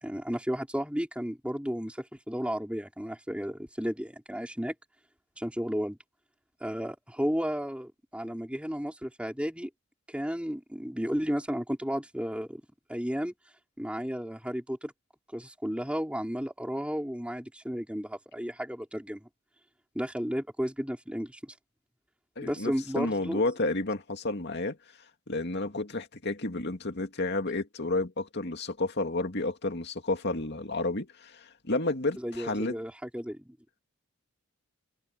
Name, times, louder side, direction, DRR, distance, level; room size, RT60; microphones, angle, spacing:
voice 1, 0.0-4.7 5.4-6.0 6.6-9.7 10.1-12.6 12.9-13.3 13.8-14.9 15.3-19.3 19.9-21.5 22.4-23.4 32.2-33.6, equal, 5° right, 4.9 m, -33 dB
voice 2, 22.4-24.8 25.3-32.8, left 2 dB, 55° left, 2.3 m, -31 dB
head